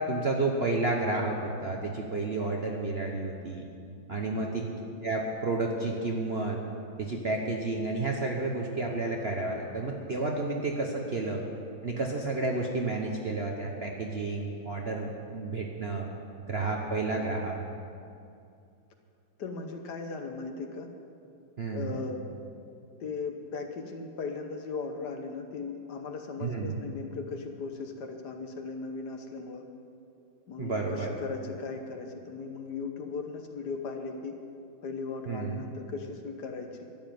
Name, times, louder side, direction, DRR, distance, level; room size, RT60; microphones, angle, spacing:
voice 1, 0.0-3.6 4.1-4.7 5.0-6.6 7.0-11.4 11.8-16.1 16.5-17.6 21.6-22.0 26.4-26.8 30.6-31.1 35.3-35.6, right 3 dB, 45° right, 0 dB, 0.9 m, -31 dB
voice 2, 19.4-20.9 21.7-22.2 23.0-29.6 30.5-34.4 34.8-36.8, left 4 dB, 60° left, 5 dB, 1.4 m, -37 dB
12.5 x 7.2 x 9.4 m, 2.5 s
omnidirectional pair, 2.2 m